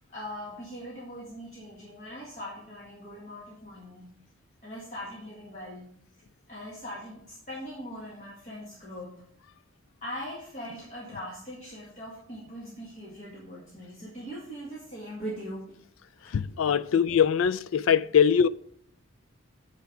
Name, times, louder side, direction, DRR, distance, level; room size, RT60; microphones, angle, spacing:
voice 1, 0.1-4.1 4.6-5.9 6.5-9.1 10.0-15.8 16.2-16.3, equal, 35° left, 2.0 m, -41 dB
voice 2, 16.3-18.5, left 7 dB, 75° left, 0.4 m, -22 dB
9.2 x 4.6 x 6.1 m
head